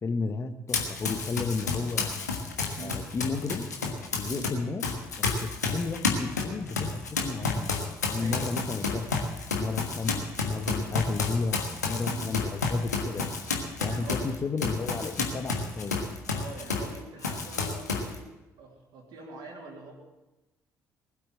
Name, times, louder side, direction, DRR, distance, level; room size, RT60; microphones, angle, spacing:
voice 1, 0.0-2.3 2.8-3.7 4.1-4.8 5.2-7.7 8.0-9.3 9.6-11.6 11.9-13.3 13.8-16.0, left 4 dB, 30° left, 8 dB, 1.5 m, -33 dB
Run, 0.7-4.5 4.8-17.0 17.2-18.2, left 4 dB, 85° left, 1.4 m, -30 dB
voice 2, 13.8-14.4 16.3-18.3 18.6-19.9, right 3 dB, 60° right, 0 dB, 3.1 m, -44 dB
19.5 x 8.5 x 7.5 m, 1.0 s
figure-of-eight pair, 45°, 9 cm